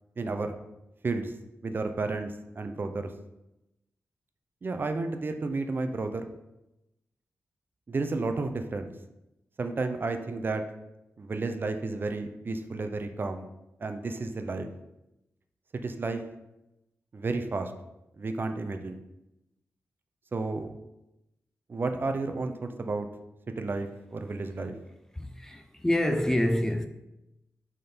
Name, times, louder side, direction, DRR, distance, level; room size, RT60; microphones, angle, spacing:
voice 1, 0.2-0.6 1.0-1.3 1.6-3.1 4.6-6.3 7.9-8.9 9.6-10.6 11.2-13.5 13.8-14.7 15.7-16.2 17.1-17.7 18.2-19.0 20.3-20.7 21.7-23.1 23.6-24.8, right 3 dB, 40° right, 0.6 m, -32 dB
voice 2, 25.1-26.9, left 1 dB, 10° left, 0.4 m, -27 dB
6.5 x 3.7 x 4.4 m
wide cardioid pair, 110°, 5 cm